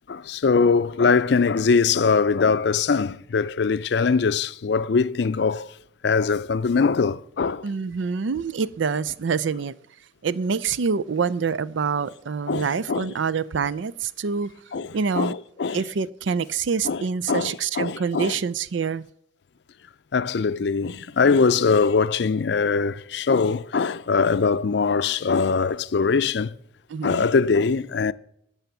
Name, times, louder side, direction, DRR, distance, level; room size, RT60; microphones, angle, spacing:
voice 1, 0.1-5.7 6.0-7.7 12.5-13.1 14.7-14.9 15.1-15.8 16.8-17.0 17.3-18.4 20.1-26.5 27.0-28.1, left 5 dB, 65° left, 0.4 m, -22 dB
voice 2, 7.6-9.7 10.2-14.5 14.9-15.4 15.7-19.0 26.9-27.3, right 5 dB, 85° right, 0.5 m, -26 dB
12.5 x 5.7 x 9.2 m
head